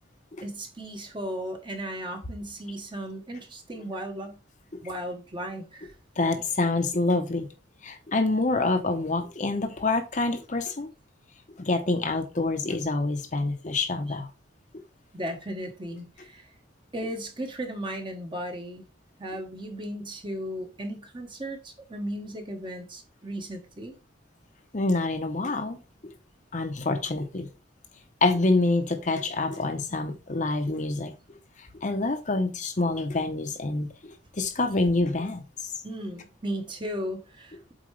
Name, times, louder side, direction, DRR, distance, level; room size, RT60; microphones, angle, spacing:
voice 1, 0.4-4.4 4.8-5.9 15.1-16.5 16.9-18.9 19.2-24.0 35.8-37.7, equal, 25° right, 1.1 m, -36 dB
voice 2, 6.2-7.5 7.8-10.9 11.6-14.3 24.7-25.8 26.5-27.5 28.2-31.1 31.8-33.9 34.4-35.4, left 2 dB, 40° left, 0.8 m, -26 dB
7.8 x 4.4 x 3.2 m
head